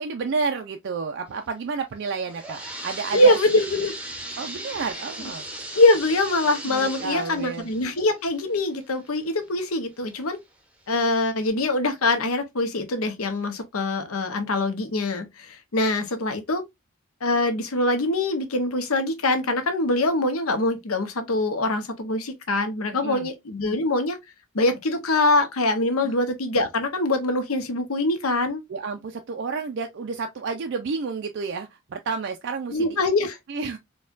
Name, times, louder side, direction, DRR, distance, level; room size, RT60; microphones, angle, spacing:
voice 1, 0.0-3.4 4.4-5.4 6.6-7.7 22.9-23.3 26.0-26.2 28.7-33.0 33.5-33.8, right 5 dB, 55° right, 0.4 m, -30 dB
sound 1, 2.0-9.6 10.1-10.2 10.9-11.0 11.4-11.5, right 1 dB, 5° right, 0.6 m, -38 dB
voice 2, 3.1-3.9 5.7-10.4 10.9-16.6 17.2-24.2 24.5-28.6 32.7-33.4, left 2 dB, 85° left, 0.8 m, -23 dB
4.2 x 2.3 x 2.4 m
head